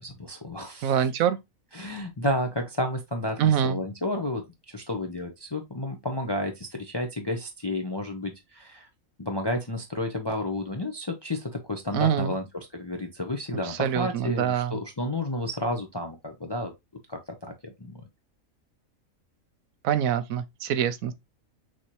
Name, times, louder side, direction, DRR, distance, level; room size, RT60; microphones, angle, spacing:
voice 1, 0.0-0.9 1.7-8.9 9.2-12.5 12.7-16.7 17.1-18.0, left 1 dB, 30° left, 0.4 m, -31 dB
voice 2, 0.8-1.4 3.4-3.8 11.9-12.3 13.6-14.8 19.8-21.1, right 9 dB, 80° right, 1.1 m, -25 dB
6.2 x 2.9 x 3.0 m
omnidirectional pair, 1.4 m